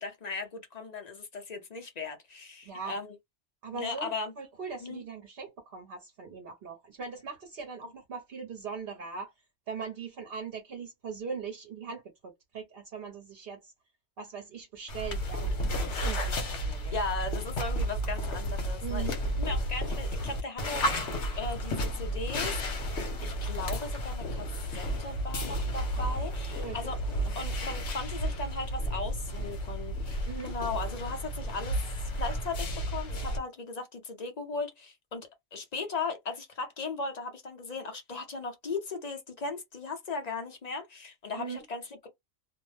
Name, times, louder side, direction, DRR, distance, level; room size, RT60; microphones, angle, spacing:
voice 1, 0.0-3.2 3.7-4.3 4.8-5.0 16.9-21.1 21.4-22.6 23.2-30.2 30.4-31.8 32.2-42.1, left 4 dB, 45° left, 0.6 m, -37 dB
voice 2, 2.6-3.0 3.6-9.3 9.7-13.7 14.2-17.0 18.8-19.2 26.0-26.1 26.5-26.8 27.2-27.3 30.3-30.6 41.4-41.6, right 5 dB, 55° right, 0.9 m, -40 dB
sound 1, 14.9-33.4, equal, 65° left, 1.1 m, -32 dB
2.5 x 2.1 x 3.2 m
omnidirectional pair, 1.3 m